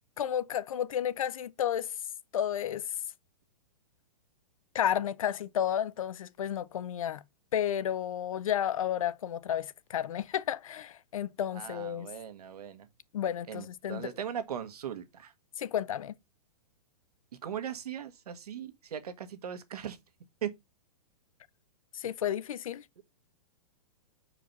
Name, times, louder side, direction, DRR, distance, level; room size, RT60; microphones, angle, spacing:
voice 1, 0.2-1.9 2.3-2.9 4.7-7.2 7.5-12.1 13.1-14.1 15.6-16.1 21.9-22.8, left 10 dB, 55° left, 0.6 m, -32 dB
voice 2, 11.5-12.9 13.5-15.3 17.4-20.0 20.4-20.5 23.0-23.1, right 9 dB, 70° right, 1.6 m, -39 dB
6.0 x 4.9 x 5.3 m
hypercardioid pair, 175°, 20 cm